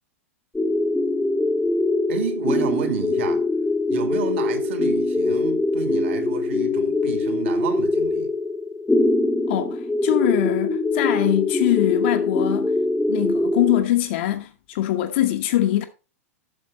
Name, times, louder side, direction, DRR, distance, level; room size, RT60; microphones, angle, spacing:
sound 1, 0.5-13.8, left 2 dB, 5° left, 1.0 m, -23 dB
voice 1, 2.1-3.4 3.9-8.3, right 8 dB, 55° right, 2.4 m, -31 dB
voice 2, 9.5-12.7 13.1-15.9, left 13 dB, 50° left, 1.0 m, -23 dB
12.0 x 7.0 x 4.0 m
figure-of-eight pair, 95°, 8 cm